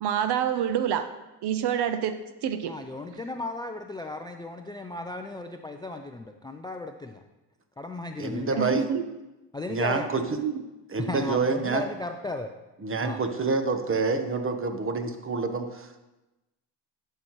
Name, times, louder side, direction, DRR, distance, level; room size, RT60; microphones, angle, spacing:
voice 1, 0.0-1.1 1.4-2.7 8.6-9.0 10.4-10.6, right 9 dB, 55° right, 10 dB, 0.7 m, -27 dB
voice 2, 2.7-7.2 7.8-8.8 9.5-10.1 11.0-12.5 13.0-13.2, left 2 dB, 10° left, 6 dB, 0.3 m, -35 dB
voice 3, 8.2-8.8 9.7-10.2 10.9-11.8 12.8-16.0, right 4 dB, 25° right, 8 dB, 1.0 m, -27 dB
11.0 x 5.7 x 3.1 m, 1.0 s
supercardioid pair, 80°, 48 cm